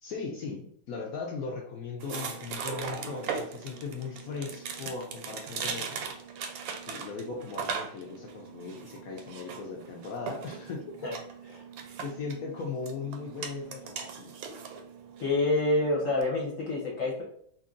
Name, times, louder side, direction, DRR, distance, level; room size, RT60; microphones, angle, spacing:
voice 1, 0.0-6.0 6.9-11.1 12.0-14.4, left 4 dB, 75° left, -1 dB, 0.8 m, -38 dB
sound 1, 2.0-16.2, right 6 dB, 85° right, 1.3 m, -39 dB
voice 2, 15.2-17.2, left 2 dB, 55° left, -4 dB, 1.0 m, -27 dB
2.9 x 2.6 x 3.7 m, 0.65 s
omnidirectional pair, 2.1 m